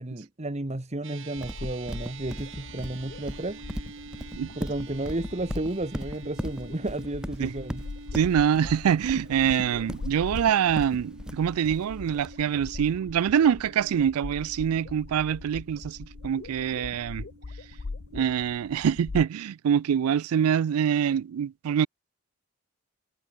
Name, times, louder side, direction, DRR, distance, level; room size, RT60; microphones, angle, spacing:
voice 1, 0.0-3.6 4.6-7.8, right 2 dB, 30° right, 1.3 m, -32 dB
sound 1, 1.0-19.6, right 3 dB, 60° right, 2.2 m, -48 dB
sound 2, 1.3-19.3, left 3 dB, 50° left, 0.6 m, -42 dB
Livestock farm animals working animals, 1.4-12.3, equal, 5° right, 1.8 m, -37 dB
voice 2, 8.1-17.3 18.1-21.9, right 8 dB, 85° right, 0.3 m, -25 dB
head